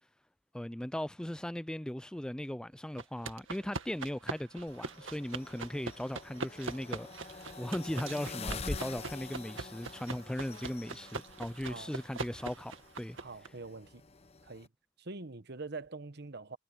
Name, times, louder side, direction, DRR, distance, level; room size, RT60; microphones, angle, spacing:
voice 1, 0.5-13.2, left 1 dB, 5° left, 0.3 m, -38 dB
sound 1, 3.0-13.5, right 4 dB, 85° right, 2.0 m, -43 dB
sound 2, 4.7-14.7, left 3 dB, 30° left, 0.9 m, -46 dB
voice 2, 13.1-14.0 14.4-14.7 15.0-16.6, right 3 dB, 55° right, 1.2 m, -44 dB
head